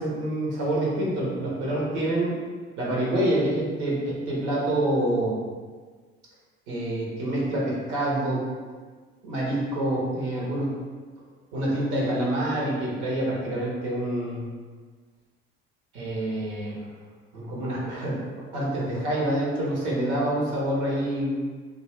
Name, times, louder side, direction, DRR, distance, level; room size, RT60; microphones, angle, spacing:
voice 1, 0.0-2.3 2.8-5.4 6.7-8.4 9.2-10.7 11.5-14.4 15.9-16.8 17.3-18.2 18.5-21.3, right 1 dB, 80° right, -4 dB, 1.1 m, -27 dB
2.5 x 2.4 x 3.2 m, 1.5 s
hypercardioid pair, 65°, 31 cm